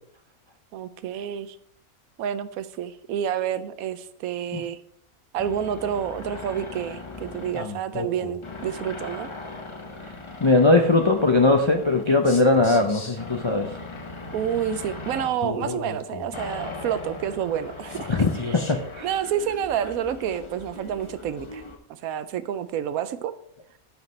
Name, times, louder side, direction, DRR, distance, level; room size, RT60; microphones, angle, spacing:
voice 1, 0.7-1.6 2.2-4.8 5.3-9.3 14.3-18.1 18.5-18.7 19.0-21.6 21.9-23.3, right 9 dB, 85° right, 13 dB, 1.0 m, -29 dB
sound 1, 5.4-21.8, left 3 dB, 25° left, 0.7 m, -37 dB
voice 2, 10.4-13.7 18.1-19.1, left 2 dB, 45° left, 3 dB, 0.3 m, -20 dB
14.5 x 4.9 x 3.2 m, 0.68 s
omnidirectional pair, 1.5 m